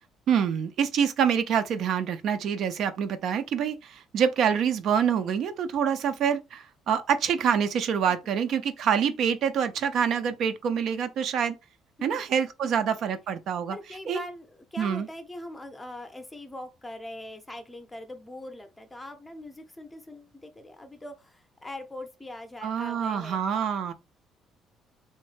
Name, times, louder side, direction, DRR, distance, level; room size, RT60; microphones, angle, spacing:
voice 1, 0.3-11.5 12.0-13.7 14.1-14.2 14.8-15.1 22.6-23.9, right 7 dB, 55° right, 0.3 m, -26 dB
voice 2, 12.0-12.3 12.6-12.9 13.7-23.4, left 1 dB, 10° left, 0.5 m, -42 dB
3.1 x 2.1 x 3.1 m
cardioid pair, 150°, 0 cm